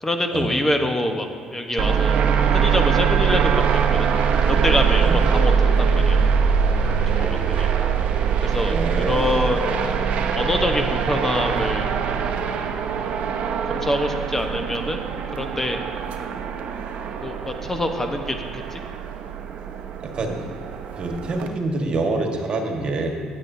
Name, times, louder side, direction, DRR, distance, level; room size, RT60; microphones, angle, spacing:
voice 1, 0.0-1.3 1.5-2.2 2.5-4.1 4.5-6.3 7.1-7.7 8.4-9.7 10.4-11.9 13.7-15.0 15.3-15.8 17.2-18.8, left 1 dB, 15° left, 4 dB, 1.0 m, -25 dB
sound 1, 1.8-21.5, right 7 dB, 65° right, 0.8 m, -22 dB
voice 2, 8.7-9.4 20.1-20.4 21.0-23.1, right 3 dB, 45° right, 2 dB, 1.5 m, -26 dB
16.0 x 8.6 x 2.7 m, 2.2 s
hypercardioid pair, 65°, 2 cm